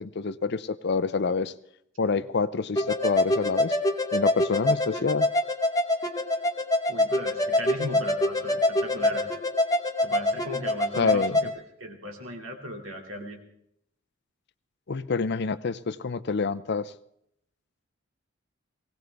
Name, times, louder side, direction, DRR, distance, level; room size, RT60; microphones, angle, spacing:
voice 1, 0.0-1.5 2.0-3.8 4.1-5.3 11.0-11.3 14.9-16.9, left 4 dB, 55° left, 15 dB, 0.5 m, -27 dB
sound 1, 2.8-11.5, left 1 dB, 15° left, 1.0 m, -25 dB
voice 2, 6.9-9.3 10.0-11.5 11.8-13.4, left 1 dB, 85° right, 2 dB, 2.5 m, -36 dB
19.5 x 17.5 x 3.5 m, 0.72 s
head